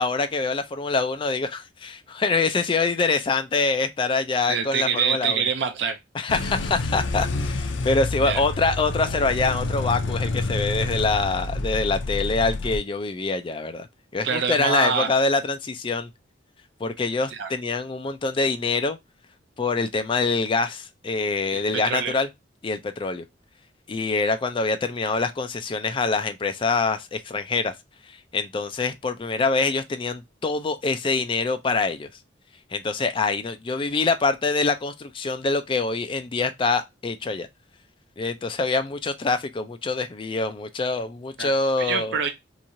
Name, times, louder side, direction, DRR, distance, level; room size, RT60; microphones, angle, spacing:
voice 1, 0.0-5.4 6.1-13.9 14.1-16.1 16.8-19.0 19.6-22.3 22.6-23.2 23.9-27.7 28.3-32.1 32.7-37.5 38.2-42.2, left 3 dB, 30° left, 0.4 m, -25 dB
voice 2, 4.5-6.0 8.2-8.4 14.2-15.2 17.3-17.5 21.5-22.2 41.4-41.5 41.8-42.3, right 6 dB, 65° right, 0.5 m, -25 dB
sound 1, 6.3-12.8, left 2 dB, 80° left, 0.5 m, -28 dB
3.0 x 2.4 x 2.6 m
head